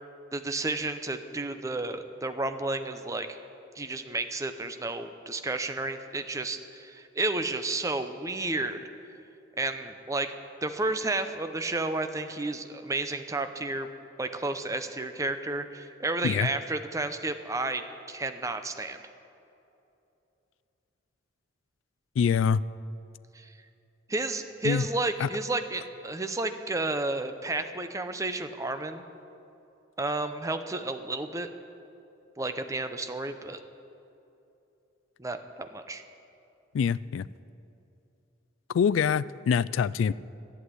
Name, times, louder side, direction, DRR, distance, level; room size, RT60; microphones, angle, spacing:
voice 1, 0.3-3.3 3.8-8.8 9.6-10.3 10.6-13.9 14.2-19.0 23.3-23.5 24.1-29.0 30.0-31.5 32.4-33.6 35.2-36.0, right 2 dB, 15° right, 9 dB, 0.6 m, -31 dB
voice 2, 22.2-22.6 24.6-24.8 25.2-25.3 36.7-37.3 38.7-40.1, left 7 dB, 90° left, 19 dB, 0.3 m, -25 dB
11.5 x 8.2 x 9.5 m, 2.8 s
head